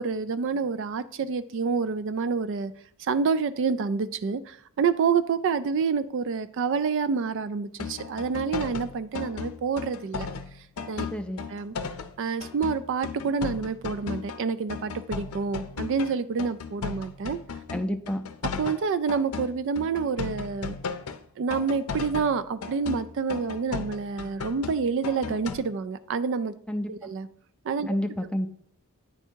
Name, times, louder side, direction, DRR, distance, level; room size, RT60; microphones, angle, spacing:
voice 1, 0.0-2.7 3.0-10.3 10.9-11.1 11.5-11.7 12.2-17.4 18.6-20.8 21.4-26.5 26.9-27.3 27.6-28.0, right 5 dB, 60° right, 13 dB, 0.4 m, -28 dB
sound 1, 7.8-12.2 12.4-16.1 16.4-21.2 21.5-25.6, left 5 dB, 75° left, 0.6 m, -36 dB
voice 2, 11.1-11.5 17.7-18.3 26.7-27.1 27.9-28.5, equal, 5° left, 5 dB, 0.4 m, -30 dB
9.1 x 3.5 x 4.4 m, 0.65 s
head